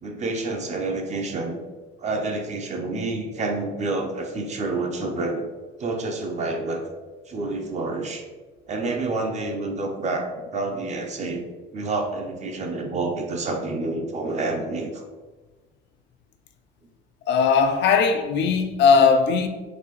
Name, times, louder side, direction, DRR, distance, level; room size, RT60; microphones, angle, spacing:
voice 1, 0.0-1.6 2.0-5.5 5.8-6.8 7.3-8.2 8.7-11.5 11.7-15.1, right 2 dB, 35° right, 0.6 m, -28 dB
voice 2, 17.3-19.5, left 5 dB, 60° left, 0.4 m, -18 dB
4.0 x 2.6 x 3.0 m
cardioid pair, 125°, 21 cm